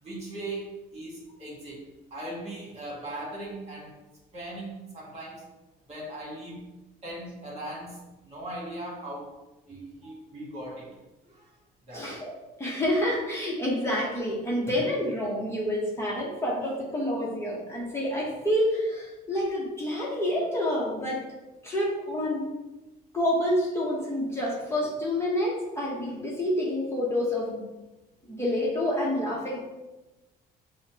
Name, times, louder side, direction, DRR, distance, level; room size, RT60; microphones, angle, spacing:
voice 1, 0.0-4.0 4.3-5.4 5.9-6.7 7.0-9.3 9.7-10.9 11.3-11.5 11.8-12.1, right 1 dB, 40° right, -4 dB, 1.5 m, -39 dB
voice 2, 11.9-21.3 21.6-22.5 23.1-27.6 28.2-29.6, left 1 dB, 15° left, -5 dB, 0.9 m, -28 dB
5.6 x 2.1 x 2.8 m, 1.0 s
cardioid pair, 110°, 17 cm